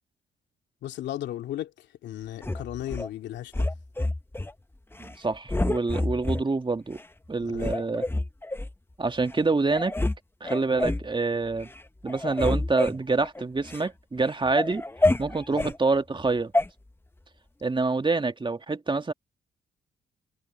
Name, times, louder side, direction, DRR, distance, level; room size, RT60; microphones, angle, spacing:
voice 1, 0.8-3.7 7.4-7.7 15.5-15.7, left 12 dB, 75° left, 2.8 m, -36 dB
sound 1, 2.4-3.1 3.5-4.5 4.9-5.2 5.5-6.4 7.0-7.1 7.6-8.7 9.3-9.4 9.7-10.2 10.4-11.1 11.5-11.8 12.1-13.9 14.3-15.8 16.5-16.7, left 2 dB, 10° left, 1.2 m, -28 dB
voice 2, 5.0-7.0 7.3-8.0 9.0-9.9 10.4-11.7 12.0-14.8 15.2-16.5 17.6-19.1, right 3 dB, 25° right, 2.2 m, -26 dB
supercardioid pair, 50°, 18 cm